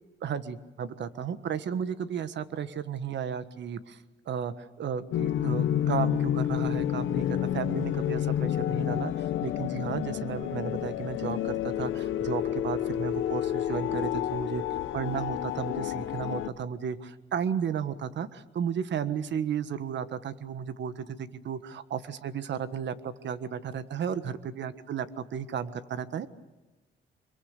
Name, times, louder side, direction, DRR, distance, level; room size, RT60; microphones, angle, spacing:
voice 1, 0.2-4.0 4.3-14.6 14.9-26.3, right 7 dB, 65° right, 12 dB, 1.5 m, -34 dB
sound 1, 5.1-16.5, left 11 dB, 80° left, 1.2 m, -29 dB
25.5 x 23.0 x 6.7 m, 1.2 s
cardioid pair, 90°, 20 cm